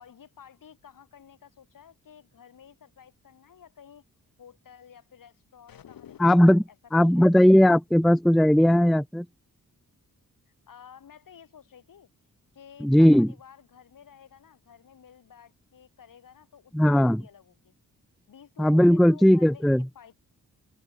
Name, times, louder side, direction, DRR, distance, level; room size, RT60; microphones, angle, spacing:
voice 1, 0.0-4.0 4.4-6.8 7.1-7.3 10.7-12.1 12.5-17.7 18.3-20.1, left 8 dB, 70° left, 3.4 m, -52 dB
sound 1, 5.7-6.7, left 10 dB, 85° left, 3.9 m, -50 dB
voice 2, 6.2-6.6 6.9-9.3 12.8-13.3 16.7-17.2 18.6-19.8, equal, ahead, 0.4 m, -18 dB
open air
cardioid pair, 70°, 34 cm